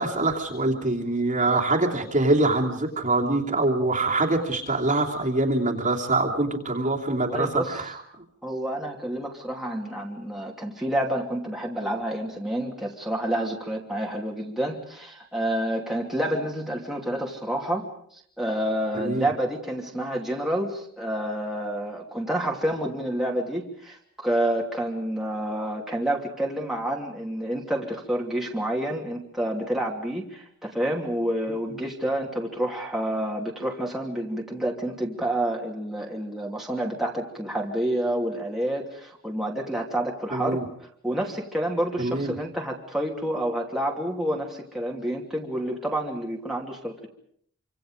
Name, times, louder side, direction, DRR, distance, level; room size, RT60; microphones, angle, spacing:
voice 1, 0.0-8.0 19.0-19.3 40.3-40.6 42.0-42.4, right 2 dB, 35° right, 0 dB, 2.9 m, -24 dB
voice 2, 7.2-7.7 8.4-17.9 18.4-40.6 41.0-47.1, right 1 dB, ahead, -2 dB, 2.9 m, -29 dB
27.0 x 26.0 x 5.1 m, 0.64 s
head